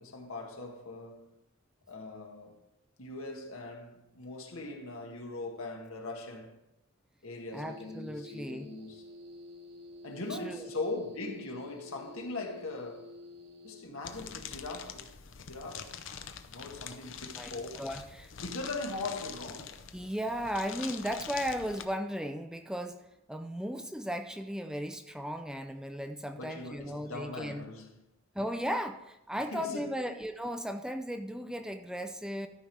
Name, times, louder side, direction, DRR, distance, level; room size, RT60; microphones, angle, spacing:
voice 1, 0.0-1.3 1.9-2.6 3.0-6.6 7.2-9.0 10.0-13.2 13.6-15.1 15.4-16.0 16.5-17.7 18.4-19.8 26.4-27.9 29.5-30.0, left 2 dB, 85° left, 1.6 m, -40 dB
voice 2, 7.5-8.7 10.3-10.6 17.3-17.5 17.8-18.3 19.9-27.6 28.3-32.5, equal, 5° right, 0.4 m, -36 dB
sound 1, 7.5-13.8, left 2 dB, 50° right, 1.3 m, -50 dB
sound 2, 14.0-21.8, left 7 dB, 65° left, 0.7 m, -45 dB
13.0 x 5.4 x 4.6 m
head